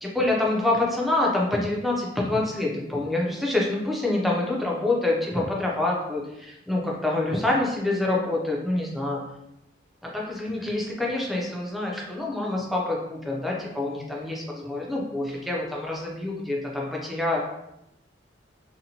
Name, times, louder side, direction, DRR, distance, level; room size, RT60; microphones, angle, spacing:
voice 1, 0.0-9.2 10.0-17.4, left 2 dB, ahead, -2 dB, 0.4 m, -26 dB
2.7 x 2.1 x 2.7 m, 0.86 s
head